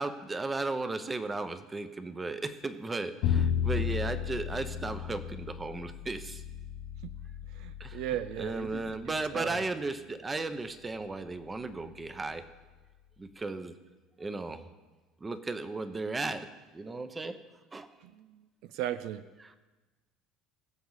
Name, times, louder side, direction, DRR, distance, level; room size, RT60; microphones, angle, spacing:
voice 1, 0.0-6.4 7.8-8.0 8.4-12.4 13.2-13.7 14.2-14.7 15.2-17.4 17.7-17.9 19.4-19.6, right 3 dB, 20° right, 10 dB, 1.0 m, -35 dB
Bowed string instrument, 3.2-9.4, left 8 dB, 65° left, 1.0 m, -34 dB
voice 2, 7.5-9.0 9.3-9.6 18.0-19.2, right 12 dB, 75° right, 13 dB, 0.4 m, -37 dB
21.0 x 7.0 x 4.1 m, 1.2 s
supercardioid pair, 100°, 0 cm